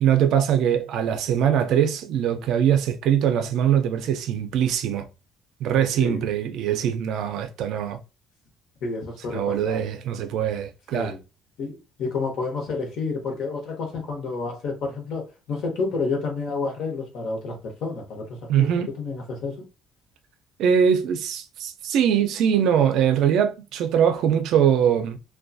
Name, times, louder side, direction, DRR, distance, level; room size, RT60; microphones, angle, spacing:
voice 1, 0.0-5.1 5.6-8.0 9.3-11.1 18.5-18.9 20.6-25.2, right 9 dB, 60° right, 0.4 m, -22 dB
voice 2, 8.8-9.8 10.9-11.2 11.6-18.7 19.0-19.6, left 4 dB, 55° left, 0.9 m, -30 dB
2.5 x 2.2 x 2.3 m
cardioid pair, 170°, 0 cm